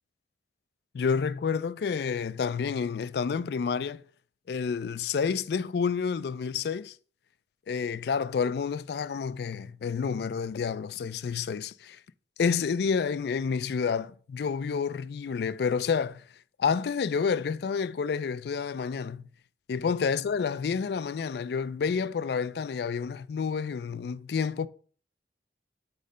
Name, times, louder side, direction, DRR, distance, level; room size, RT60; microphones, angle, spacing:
voice 1, 0.9-4.0 4.5-7.0 7.7-12.0 12.4-16.2 16.6-19.2 19.7-24.7, left 6 dB, 60° left, 0.3 m, -29 dB
7.7 x 3.2 x 5.4 m
head